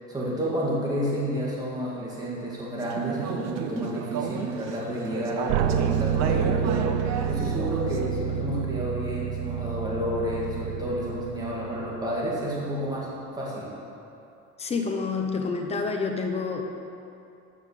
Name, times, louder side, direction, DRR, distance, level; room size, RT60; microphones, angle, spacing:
voice 1, 0.1-6.9 7.3-13.1 13.4-13.7, equal, 10° right, -6 dB, 2.1 m, -30 dB
Conversation / Chatter, 2.8-8.2, right 6 dB, 50° right, 0.8 m, -32 dB
sound 1, 5.5-12.4, right 8 dB, 70° right, 0.5 m, -29 dB
voice 2, 14.6-16.6, left 4 dB, 20° left, 3 dB, 0.9 m, -28 dB
13.0 x 5.9 x 6.6 m, 2.7 s
cardioid pair, 165°, 34 cm